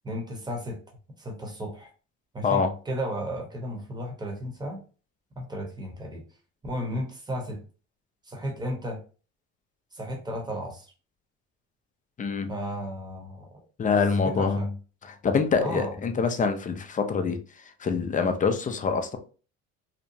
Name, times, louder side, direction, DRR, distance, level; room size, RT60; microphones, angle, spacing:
voice 1, 0.0-0.8 1.2-1.9 2.3-4.8 5.4-6.2 6.6-7.6 8.2-9.0 9.9-10.9 12.5-13.5 14.2-14.7 15.6-16.0, equal, 15° right, 0.9 m, -34 dB
voice 2, 12.2-12.5 13.8-14.7 15.0-17.4 17.8-19.2, left 5 dB, 25° left, 0.4 m, -25 dB
2.9 x 2.1 x 2.6 m
supercardioid pair, 95°, 32 cm